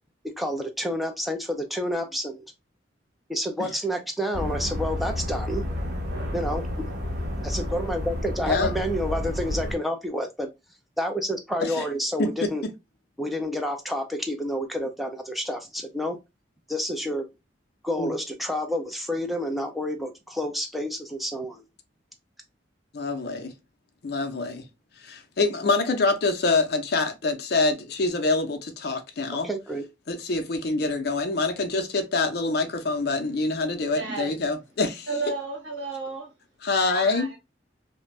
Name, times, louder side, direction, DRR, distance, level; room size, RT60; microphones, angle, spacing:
voice 1, 0.4-2.5 3.3-5.6 6.3-6.9 7.4-10.5 11.0-12.6 13.2-16.2 16.7-17.2 17.8-21.6 29.4-29.8, equal, ahead, 0.4 m, -29 dB
sound 1, 4.3-9.7, left 1 dB, 55° right, 1.1 m, -30 dB
voice 2, 12.2-12.5 18.0-18.1 22.9-23.5 24.0-24.7 25.0-29.5 30.1-35.1 36.6-37.3, left 3 dB, 60° left, 0.5 m, -25 dB
voice 3, 33.9-34.3 35.1-36.3 36.9-37.4, right 3 dB, 70° right, 1.2 m, -32 dB
2.5 x 2.2 x 3.0 m
head